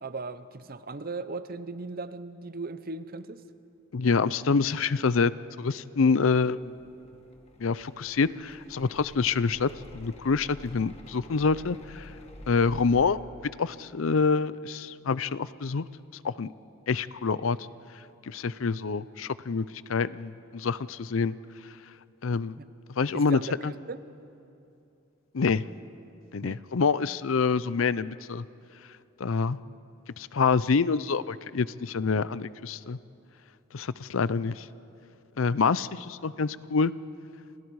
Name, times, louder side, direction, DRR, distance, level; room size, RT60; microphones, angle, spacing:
voice 1, 0.0-3.4 22.6-22.7 23.1-24.0 26.4-26.6, right 3 dB, 45° right, 13 dB, 0.8 m, -37 dB
voice 2, 3.9-5.3 5.6-6.8 7.6-12.1 12.5-13.2 13.6-15.8 16.1-16.5 16.9-17.7 18.2-21.3 22.2-22.6 23.0-23.7 25.3-25.6 26.3-28.4 29.2-29.6 30.2-33.0 33.7-34.7 35.4-36.9, left 5 dB, 75° left, 17 dB, 0.6 m, -26 dB
sound 1, 6.0-13.0, left 1 dB, 30° left, 1.8 m, -49 dB
29.5 x 27.0 x 4.8 m, 2.7 s
head